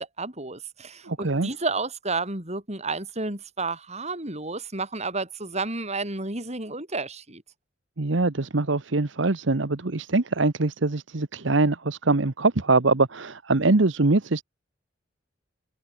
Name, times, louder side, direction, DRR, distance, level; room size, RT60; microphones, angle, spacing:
voice 1, 0.2-7.4, right 3 dB, 35° right, 7.3 m, -31 dB
voice 2, 1.0-1.5 8.0-14.4, right 3 dB, 70° right, 1.1 m, -23 dB
head